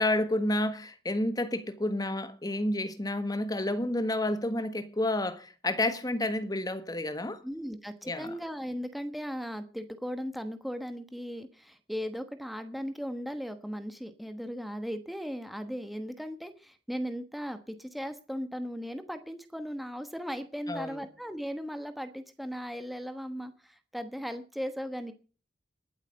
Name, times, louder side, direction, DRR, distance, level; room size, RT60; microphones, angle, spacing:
voice 1, 0.0-7.4 8.1-8.3 20.7-21.0, left 1 dB, 20° left, 1.3 m, -30 dB
voice 2, 7.4-25.1, equal, ahead, 1.1 m, -37 dB
20.0 x 8.2 x 5.2 m
head